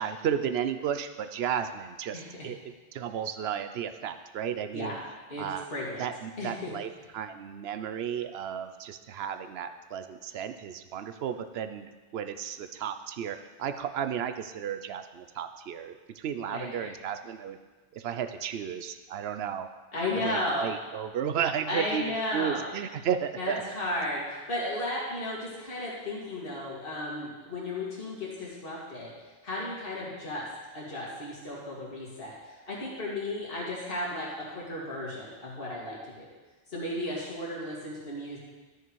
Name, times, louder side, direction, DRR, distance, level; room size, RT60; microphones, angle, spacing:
voice 1, 0.0-5.0 5.4-5.7 6.0-17.6 17.9-19.7 20.2-23.6, right 8 dB, 65° right, 9 dB, 0.9 m, -33 dB
voice 2, 2.1-2.5 4.7-5.0 5.3-6.0 6.4-6.7 16.5-16.9 19.9-20.7 21.7-22.7 23.4-29.1 29.4-36.3 36.7-38.4, left 1 dB, 55° left, -6 dB, 2.5 m, -34 dB
13.0 x 6.7 x 4.7 m, 1.3 s
omnidirectional pair, 1.2 m